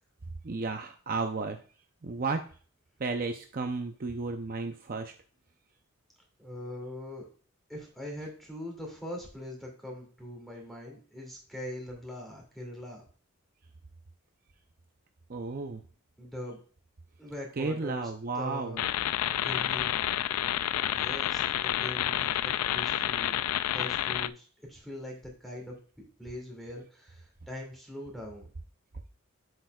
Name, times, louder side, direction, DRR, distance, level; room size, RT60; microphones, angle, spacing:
voice 1, 0.4-1.6 2.0-2.4 3.0-5.1 15.3-15.8 17.6-18.8, right 3 dB, 40° right, 5 dB, 0.5 m, -33 dB
voice 2, 6.4-7.3 7.7-13.0 16.2-16.6 17.2-18.1 18.3-18.9 19.2-20.0 20.9-28.5, left 1 dB, ahead, -1 dB, 2.4 m, -42 dB
sound 1, 18.8-24.3, left 12 dB, 90° left, 0.3 m, -29 dB
7.7 x 6.6 x 2.3 m, 0.40 s
head